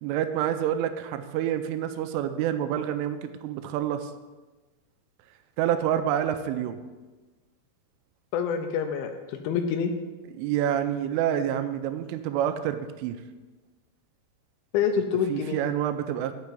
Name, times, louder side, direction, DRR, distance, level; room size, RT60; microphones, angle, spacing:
voice 1, 0.0-4.1 5.6-6.8 10.4-13.2 15.3-16.3, right 10 dB, 85° right, 9 dB, 3.1 m, -28 dB
voice 2, 8.3-9.9 14.7-15.6, left 7 dB, 80° left, 6 dB, 2.9 m, -27 dB
7.1 x 6.5 x 7.7 m, 1.2 s
omnidirectional pair, 5.7 m